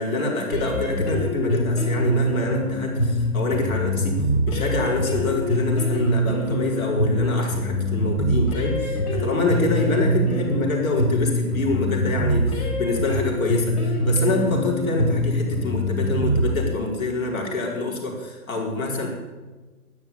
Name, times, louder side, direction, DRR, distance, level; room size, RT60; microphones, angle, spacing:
voice 1, 0.0-4.2 4.5-19.1, left 2 dB, 65° left, 0 dB, 4.7 m, -26 dB
sound 1, 0.5-16.5, equal, 85° left, 5.4 m, -24 dB
12.0 x 9.7 x 8.5 m, 1.3 s
hypercardioid pair, 145°, 45 cm